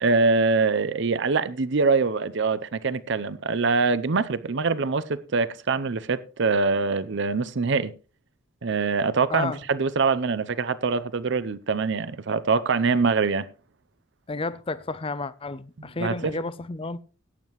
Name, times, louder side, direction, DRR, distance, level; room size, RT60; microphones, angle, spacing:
voice 1, 0.0-7.9 8.6-13.5 16.0-16.4, right 4 dB, 60° right, 0.6 m, -24 dB
voice 2, 14.3-17.0, left 3 dB, 25° left, 0.5 m, -31 dB
17.5 x 9.1 x 3.1 m
head